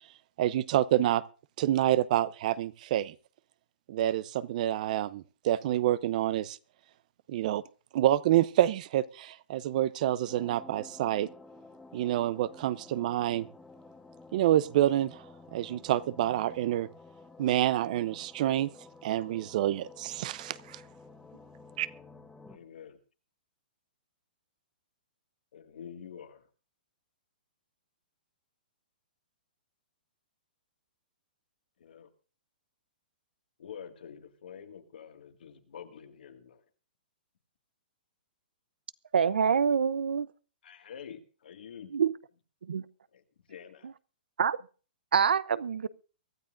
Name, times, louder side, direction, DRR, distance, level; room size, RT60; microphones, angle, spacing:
voice 1, 0.4-1.2 1.6-3.1 3.9-6.6 7.3-7.6 7.9-11.3 11.9-13.5 14.3-15.2 15.5-16.9 17.4-18.7 19.0-20.8 21.8-21.9, right 13 dB, 50° right, 0.6 m, -27 dB
sound 1, 10.3-22.6, left 3 dB, 5° left, 1.1 m, -52 dB
voice 2, 22.5-23.0 25.5-26.4 31.8-32.1 33.6-36.6 40.6-41.9 43.1-43.2 43.5-43.9, left 8 dB, 75° left, 2.0 m, -47 dB
voice 3, 39.1-40.3 41.9-42.1 42.7-42.8 44.4-44.6 45.1-45.9, right 7 dB, 85° right, 0.7 m, -25 dB
23.5 x 12.5 x 2.6 m
hypercardioid pair, 140°, 5 cm